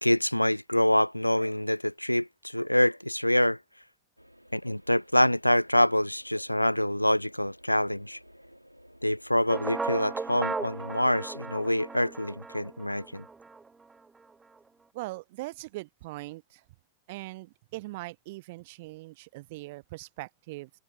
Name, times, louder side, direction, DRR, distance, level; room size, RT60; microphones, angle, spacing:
voice 1, 0.0-3.6 4.5-8.2 9.0-13.2, left 1 dB, 90° left, 0.5 m, -26 dB
sound 1, 4.2-12.4, equal, 90° right, 4.2 m, -56 dB
sound 2, 9.5-13.7, right 4 dB, 10° right, 1.0 m, -36 dB
voice 2, 14.9-16.6 17.1-20.7, right 21 dB, 50° right, 0.6 m, -41 dB
figure-of-eight pair, 90°, 0 cm